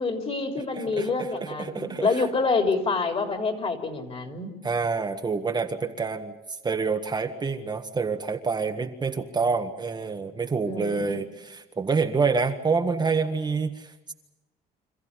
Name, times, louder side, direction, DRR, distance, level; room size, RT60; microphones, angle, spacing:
voice 1, 0.0-4.5 10.6-11.2, left 4 dB, 35° left, 5 dB, 3.8 m, -27 dB
voice 2, 0.7-2.3 4.6-14.1, right 4 dB, 25° right, 5 dB, 1.5 m, -27 dB
27.0 x 14.5 x 9.8 m, 1.0 s
cardioid pair, 110°, 17 cm